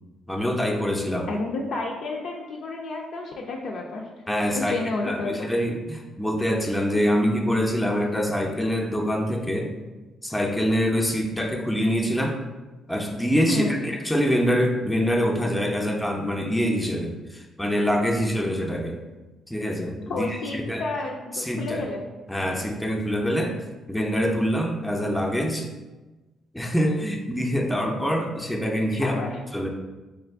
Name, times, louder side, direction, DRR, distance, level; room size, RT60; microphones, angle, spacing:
voice 1, 0.3-1.3 4.3-4.8 5.0-9.7 10.2-12.4 12.9-19.0 19.5-20.8 21.3-21.8 22.3-23.6 23.9-25.7 26.5-29.2 29.5-29.7, equal, 5° left, 0 dB, 0.5 m, -25 dB
voice 2, 1.3-4.1 4.6-5.5 13.5-13.8 20.1-22.1 28.9-29.4, left 3 dB, 75° left, -1 dB, 0.4 m, -30 dB
3.7 x 2.4 x 3.4 m, 1.1 s
cardioid pair, 90°, 0 cm